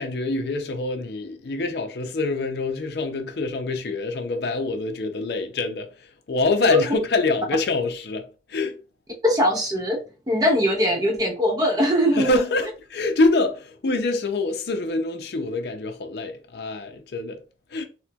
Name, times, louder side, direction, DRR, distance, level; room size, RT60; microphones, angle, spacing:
voice 1, 0.0-8.8 12.1-17.4 17.7-17.8, left 3 dB, 60° left, 0.5 m, -25 dB
voice 2, 9.2-10.0 10.3-12.4, left 1 dB, 20° right, 0.6 m, -21 dB
4.2 x 2.1 x 2.2 m
head